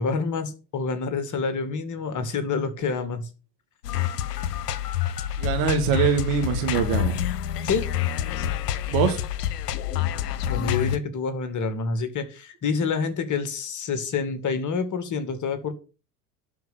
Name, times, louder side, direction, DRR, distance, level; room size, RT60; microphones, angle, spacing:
voice 1, 0.0-3.3 7.7-7.9 10.5-15.7, left 5 dB, 40° left, 2.2 m, -27 dB
sound 1, 3.8-11.0, left 10 dB, 80° left, 1.0 m, -27 dB
voice 2, 5.4-7.2 8.9-9.2, right 7 dB, 65° right, 2.8 m, -23 dB
11.5 x 4.7 x 7.1 m
hypercardioid pair, 75°, 48 cm